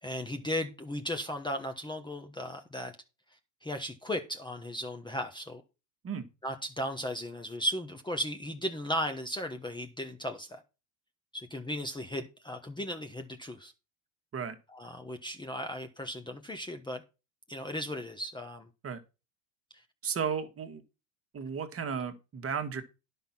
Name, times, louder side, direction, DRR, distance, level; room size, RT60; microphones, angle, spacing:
voice 1, 0.0-3.0 3.6-5.6 6.4-10.6 11.3-13.7 14.7-17.0 17.5-18.7 19.7-19.8, equal, 10° left, 1.0 m, -36 dB
voice 2, 20.0-20.8 21.3-22.8, right 6 dB, 25° right, 1.7 m, -34 dB
10.0 x 5.7 x 6.0 m
hypercardioid pair, 100°, 50 cm